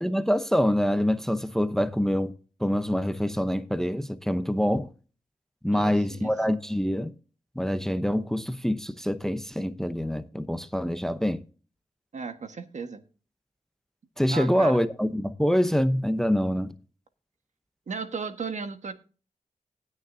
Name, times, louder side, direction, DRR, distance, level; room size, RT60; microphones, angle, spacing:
voice 1, 0.0-2.3 2.6-4.9 5.6-7.1 7.6-11.4 14.2-16.7, equal, 5° left, 0.7 m, -25 dB
voice 2, 5.7-6.6 12.1-13.0 14.3-14.9 17.9-18.9, right 5 dB, 60° right, 1.4 m, -36 dB
18.5 x 6.6 x 2.7 m
wide cardioid pair, 85°, 14 cm